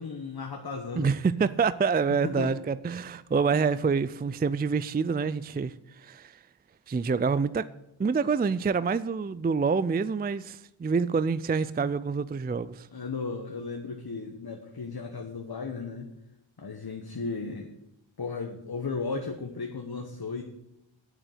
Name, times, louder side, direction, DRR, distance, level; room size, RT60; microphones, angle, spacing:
voice 1, 0.0-1.1 2.2-2.6 12.9-16.1 16.6-17.7 18.2-20.4, left 4 dB, 50° left, 1.2 m, -35 dB
voice 2, 1.0-6.4 6.9-7.6 8.0-12.9, right 5 dB, 20° right, 0.3 m, -27 dB
8.1 x 7.5 x 8.0 m
wide cardioid pair, 55°, 48 cm